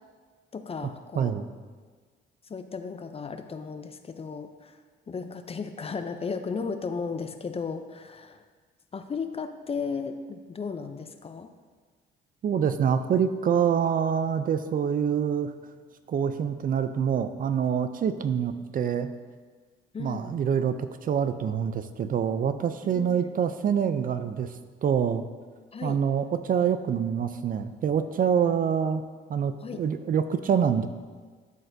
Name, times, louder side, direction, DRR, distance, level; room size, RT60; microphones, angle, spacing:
voice 1, 0.5-1.3 2.5-4.8 5.1-8.4 8.9-11.5 19.9-20.3 22.9-23.4 25.7-26.0 29.6-29.8, left 5 dB, 30° left, 9 dB, 0.4 m, -35 dB
voice 2, 1.2-1.5 12.4-15.5 16.1-19.1 20.0-24.5 24.8-25.2 25.8-29.0 29.3-30.9, right 7 dB, 45° right, 11 dB, 0.4 m, -26 dB
12.0 x 4.1 x 2.6 m, 1.5 s
cardioid pair, 90°, 20 cm